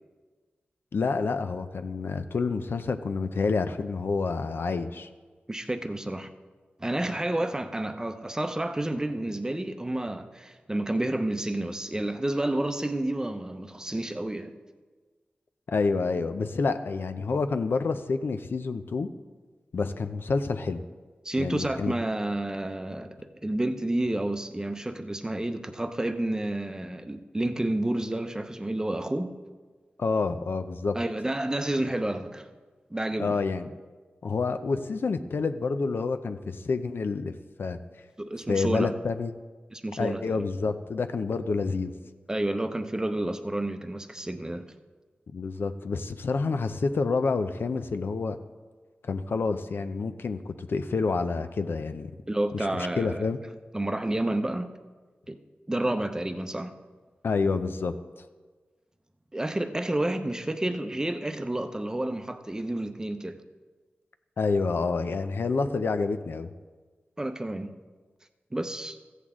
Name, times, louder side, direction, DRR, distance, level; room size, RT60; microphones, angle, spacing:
voice 1, 0.9-5.1 15.7-19.1 19.7-20.8 21.4-21.9 30.0-31.0 33.2-33.7 34.2-37.3 37.6-37.8 38.5-39.3 40.0-41.9 45.3-48.4 49.0-52.1 52.5-52.7 53.0-53.4 57.2-57.9 64.4-66.5, left 4 dB, 75° left, 9 dB, 0.6 m, -28 dB
voice 2, 5.5-6.3 6.8-14.5 21.2-29.3 30.9-32.5 32.9-33.4 38.2-39.0 39.7-40.4 42.3-44.7 52.3-53.3 53.7-54.7 55.3-55.4 55.7-56.7 59.3-63.4 67.2-67.7 68.5-69.0, right 1 dB, 15° right, 8 dB, 0.7 m, -30 dB
14.5 x 8.2 x 3.7 m, 1.4 s
wide cardioid pair, 70°, 4 cm